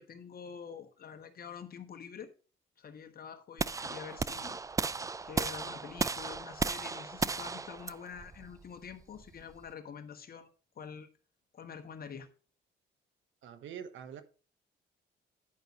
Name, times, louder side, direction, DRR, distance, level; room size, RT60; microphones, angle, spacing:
voice 1, 0.0-2.3 2.8-4.6 5.2-10.5 10.7-11.1 11.5-12.3, left 7 dB, 50° left, 1.4 m, -46 dB
sound 1, 3.6-9.7, right 4 dB, 15° right, 0.3 m, -35 dB
voice 2, 13.4-14.2, right 8 dB, 75° right, 1.2 m, -44 dB
10.5 x 5.3 x 4.8 m
cardioid pair, 90°, 20 cm